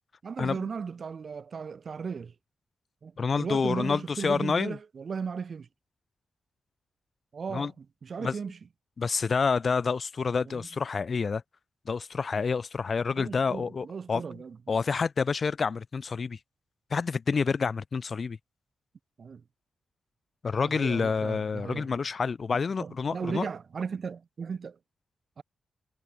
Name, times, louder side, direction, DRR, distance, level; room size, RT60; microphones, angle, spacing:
voice 1, 0.2-2.3 3.0-5.7 7.3-8.6 10.5-10.7 13.1-14.6 19.2-19.4 20.6-21.9 22.8-24.8 25.4-25.5, right 6 dB, 55° right, 0.5 m, -36 dB
voice 2, 3.2-4.8 7.5-7.7 8.2-8.3 9.0-11.4 11.9-14.2 14.7-16.4 16.9-18.4 20.4-23.5, left 5 dB, 50° left, 0.4 m, -28 dB
cardioid pair, 85°, 0 cm